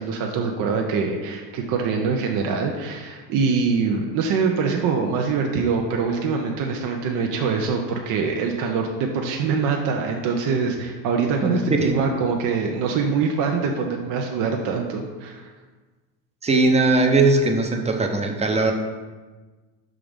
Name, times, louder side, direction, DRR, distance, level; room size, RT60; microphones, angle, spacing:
voice 1, 0.0-15.5, right 5 dB, 60° right, 2 dB, 0.8 m, -24 dB
voice 2, 16.4-18.7, right 3 dB, 20° right, 4 dB, 0.7 m, -19 dB
6.0 x 3.8 x 5.1 m, 1.3 s
cardioid pair, 115°, 36 cm